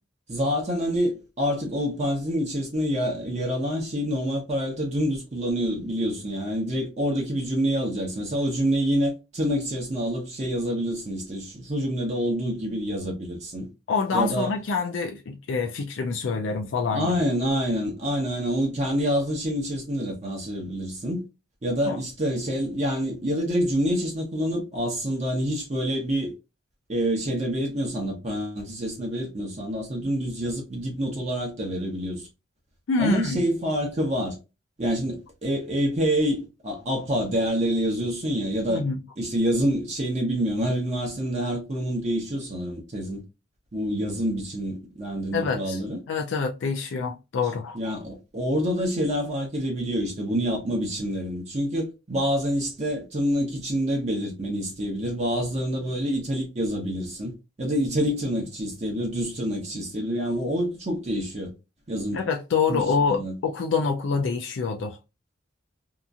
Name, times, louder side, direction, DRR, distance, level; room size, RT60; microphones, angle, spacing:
voice 1, 0.3-13.7 14.1-14.5 16.9-21.2 21.6-26.3 26.9-32.3 33.0-34.4 34.8-38.8 39.2-43.2 43.7-46.0 47.7-61.5 61.9-62.2 62.7-63.3, equal, 35° right, 0.8 m, -27 dB
voice 2, 13.9-17.1 21.8-22.0 32.9-33.4 38.7-39.0 45.3-45.8 46.1-47.8 62.1-65.0, left 4 dB, 75° left, 0.4 m, -26 dB
2.8 x 2.5 x 2.4 m
head